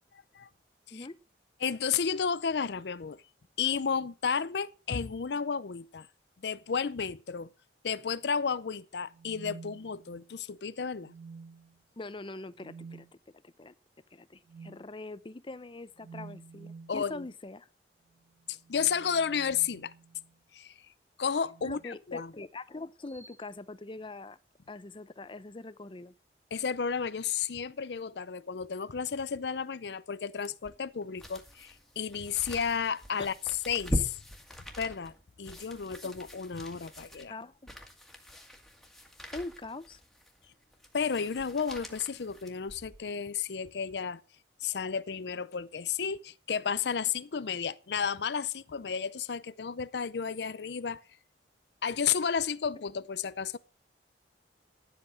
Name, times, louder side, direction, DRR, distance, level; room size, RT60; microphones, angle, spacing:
voice 1, 1.6-3.2 3.6-6.1 6.4-7.5 7.8-11.1 16.9-17.3 18.5-19.9 20.5-20.7 21.2-22.3 26.5-33.3 33.7-34.2 34.8-35.1 35.4-37.3 40.9-44.2 44.6-51.0 51.8-53.6, left 6 dB, 70° left, 0.6 m, -32 dB
sound 1, 9.0-10.4 11.0-11.8 12.6-13.0 14.5-14.8 16.0-17.0 18.5-20.3 21.4-21.9 23.1-23.4, right 4 dB, 45° right, 3.5 m, -50 dB
voice 2, 12.0-13.1 13.4-13.7 14.1-17.7 21.6-24.4 24.7-26.1 33.2-33.3 37.3-37.5 39.3-40.0, left 2 dB, 30° left, 0.6 m, -43 dB
sound 2, 30.4-43.1 43.6-43.7, equal, ahead, 1.8 m, -42 dB
12.0 x 8.0 x 6.3 m
head